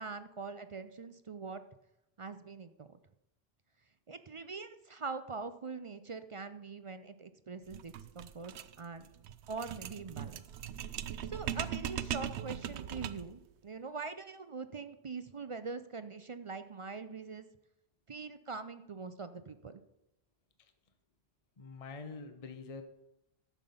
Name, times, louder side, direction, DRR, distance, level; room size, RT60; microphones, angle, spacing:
voice 1, 0.0-1.6 2.2-3.0 4.1-9.1 9.5-10.4 11.3-17.5 18.1-19.8, right 4 dB, 45° right, 11 dB, 0.4 m, -43 dB
sound 1, 7.7-13.4, right 9 dB, 85° right, 0.9 m, -40 dB
voice 2, 21.6-22.8, left 4 dB, 35° left, 7 dB, 0.8 m, -45 dB
11.5 x 7.0 x 5.5 m, 0.91 s
omnidirectional pair, 1.1 m